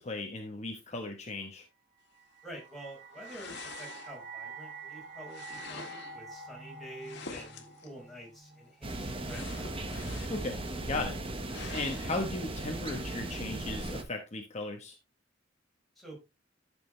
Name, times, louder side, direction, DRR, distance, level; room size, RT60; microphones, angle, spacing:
voice 1, 0.0-1.6 10.3-11.1 11.7-14.9, left 2 dB, 35° left, 3 dB, 1.2 m, -36 dB
sound 1, 2.2-9.3, right 4 dB, 55° right, 3.4 m, -47 dB
voice 2, 2.4-9.7 15.9-16.2, right 1 dB, ahead, -3 dB, 5.0 m, -48 dB
sound 2, 3.2-4.4 5.3-6.2 7.0-7.9 9.2-10.5 10.9-11.0 11.5-12.1, left 4 dB, 65° left, 1.8 m, -46 dB
sound 3, 8.8-14.0, right 1 dB, 30° right, 1.3 m, -37 dB
12.0 x 6.3 x 3.2 m, 0.26 s
head